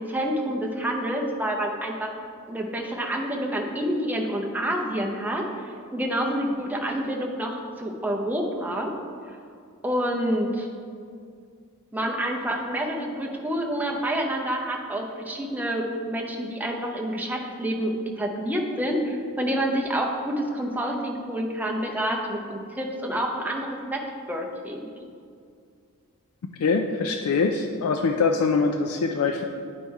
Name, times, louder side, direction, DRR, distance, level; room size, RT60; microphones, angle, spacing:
voice 1, 0.0-2.1 2.5-8.9 9.8-10.7 11.9-24.9, equal, 10° right, 0 dB, 0.7 m, -28 dB
voice 2, 26.6-29.4, left 4 dB, 75° left, 4 dB, 0.4 m, -23 dB
9.0 x 4.2 x 4.7 m, 2.3 s
head